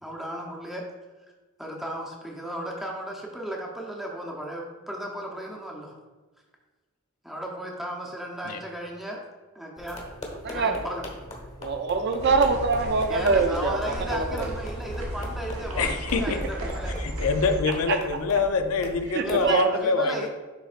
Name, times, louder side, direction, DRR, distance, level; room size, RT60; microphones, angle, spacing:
voice 1, 0.0-0.8 1.6-6.0 7.2-9.2 9.5-10.0 10.5-11.0 13.1-17.0 19.2-20.3, right 1 dB, ahead, -2 dB, 0.8 m, -35 dB
sound 1, 9.8-19.5, left 1 dB, 30° left, 1.1 m, -41 dB
voice 2, 11.6-13.8 14.1-14.5 15.8-15.9 17.9-18.0 19.1-20.1, right 4 dB, 50° right, 6 dB, 0.4 m, -24 dB
sound 2, 12.2-17.6, right 1 dB, 75° right, 1.2 m, -34 dB
voice 3, 15.8-16.4 17.0-20.3, left 4 dB, 80° left, 7 dB, 0.6 m, -25 dB
10.5 x 4.0 x 2.5 m, 1.3 s
head